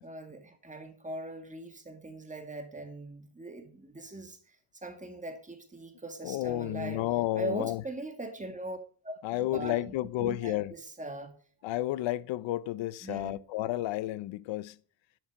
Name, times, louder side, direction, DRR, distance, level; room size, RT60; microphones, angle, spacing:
voice 1, 0.0-4.6 4.8-7.0 7.4-8.8 9.0-9.9 10.2-11.3 13.0-13.4, right 2 dB, 15° right, 2.0 m, -40 dB
voice 2, 6.2-7.8 9.2-10.7 11.6-14.8, left 15 dB, 80° left, 0.6 m, -31 dB
11.5 x 6.3 x 3.6 m
cardioid pair, 125°, 44 cm